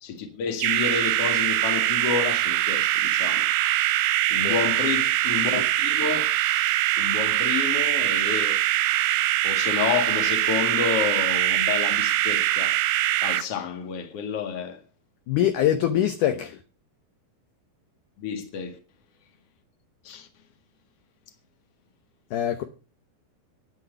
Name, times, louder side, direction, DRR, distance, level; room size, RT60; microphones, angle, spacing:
voice 1, 0.0-3.5 4.3-6.3 7.0-8.6 9.4-12.8 13.2-14.8 18.2-18.8 20.0-20.3, left 7 dB, 45° left, 2.4 m, -30 dB
sound 1, 0.6-13.4, right 14 dB, 80° right, 2.3 m, -23 dB
voice 2, 15.3-16.6 22.3-22.6, left 11 dB, 70° left, 2.2 m, -23 dB
10.5 x 9.7 x 6.6 m
omnidirectional pair, 4.4 m